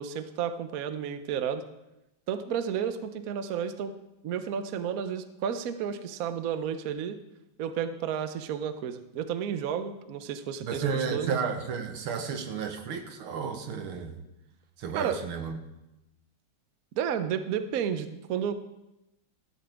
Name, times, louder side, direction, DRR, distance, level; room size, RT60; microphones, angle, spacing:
voice 1, 0.0-1.6 2.3-3.9 4.2-7.2 7.6-10.8 11.1-11.4 14.9-15.2 16.9-18.5, right 8 dB, 60° right, 10 dB, 0.9 m, -32 dB
voice 2, 10.6-14.1 14.8-15.6, right 6 dB, 85° right, 6 dB, 2.0 m, -32 dB
16.5 x 12.5 x 3.5 m, 0.94 s
omnidirectional pair, 2.3 m